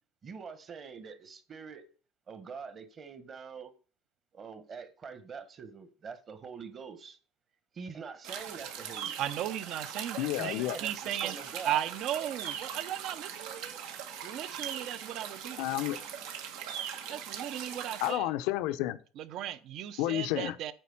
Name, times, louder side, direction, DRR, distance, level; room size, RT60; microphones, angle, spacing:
voice 1, 0.2-1.8 2.3-3.7 4.3-7.2 7.7-9.1 10.4-11.8, right 6 dB, 35° right, 1.3 m, -44 dB
sound 1, 8.2-18.1, right 8 dB, 85° right, 1.8 m, -41 dB
voice 2, 9.2-11.4 11.6-13.8 14.2-15.6 17.1-18.3 19.2-20.7, right 11 dB, 55° right, 0.8 m, -36 dB
voice 3, 10.2-10.8 15.6-16.0 18.0-19.0 20.0-20.6, left 15 dB, 80° left, 0.8 m, -30 dB
9.0 x 4.3 x 7.2 m
cardioid pair, 130°, 0 cm